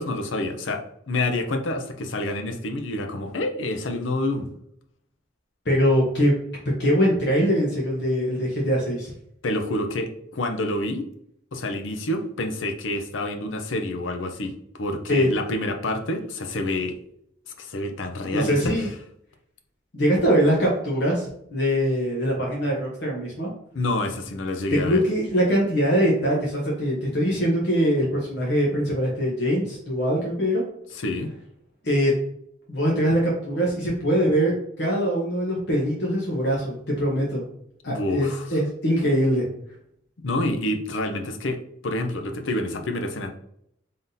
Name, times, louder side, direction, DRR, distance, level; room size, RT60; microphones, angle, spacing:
voice 1, 0.0-4.5 9.4-11.1 11.5-17.0 17.6-18.8 23.7-25.0 30.9-31.3 37.9-38.6 40.2-43.4, left 1 dB, 80° left, 6 dB, 0.6 m, -28 dB
voice 2, 5.6-6.3 6.8-9.1 15.1-15.3 18.3-18.9 19.9-23.5 24.7-30.6 31.8-32.1 32.7-37.4 37.8-39.4, equal, 60° left, -3 dB, 0.9 m, -22 dB
3.8 x 3.6 x 2.7 m, 0.71 s
head